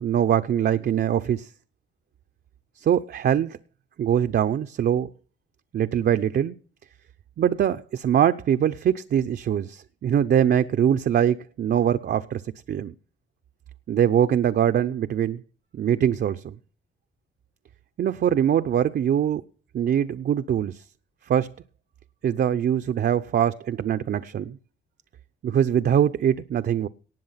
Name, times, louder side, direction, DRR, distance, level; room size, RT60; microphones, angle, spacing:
voice 1, 0.0-1.5 2.8-3.6 4.0-5.1 5.7-6.5 7.4-12.4 12.7-12.9 13.9-15.4 15.7-16.5 18.0-19.4 19.7-20.8 21.3-21.5 22.2-24.6 25.4-26.9, right 9 dB, 55° right, 0.8 m, -23 dB
18.5 x 7.4 x 5.8 m
cardioid pair, 90°, 20 cm